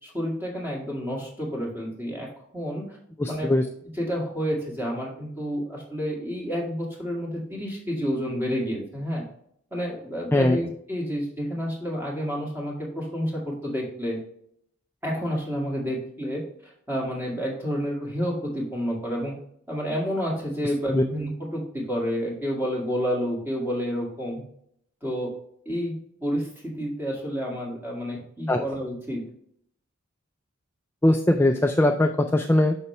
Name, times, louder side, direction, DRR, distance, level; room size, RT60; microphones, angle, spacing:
voice 1, 0.0-3.0 3.3-3.5 4.0-9.2 9.7-14.2 15.0-16.4 16.9-19.3 19.7-24.4 25.0-25.3 25.7-29.2, equal, 10° right, -2 dB, 1.9 m, -29 dB
voice 2, 3.2-3.7 10.3-10.6 20.9-21.0 28.5-28.6 31.0-32.8, left 1 dB, 10° left, 4 dB, 0.3 m, -20 dB
6.9 x 5.5 x 3.2 m, 0.69 s
head